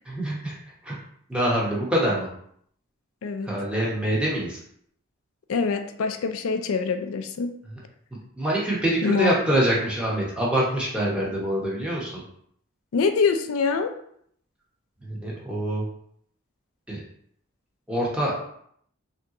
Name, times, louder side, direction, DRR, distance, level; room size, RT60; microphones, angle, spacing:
voice 1, 0.1-0.6 0.8-1.0 1.3-2.3 3.4-4.6 8.4-12.2 15.0-15.8 16.9-17.0 17.9-18.3, right 1 dB, 5° right, -5 dB, 0.9 m, -25 dB
voice 2, 5.5-7.5 9.0-9.4 12.9-13.9, left 5 dB, 75° left, 7 dB, 0.4 m, -24 dB
3.5 x 2.8 x 3.7 m, 0.67 s
head